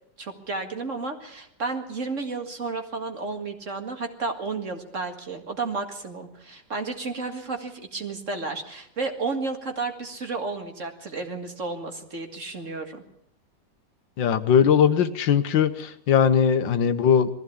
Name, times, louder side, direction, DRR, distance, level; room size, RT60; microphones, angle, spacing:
voice 1, 0.2-13.0, right 3 dB, 45° right, 5 dB, 2.2 m, -32 dB
voice 2, 14.2-17.3, left 7 dB, 90° left, 11 dB, 1.8 m, -20 dB
21.0 x 15.0 x 8.6 m, 0.73 s
omnidirectional pair, 2.0 m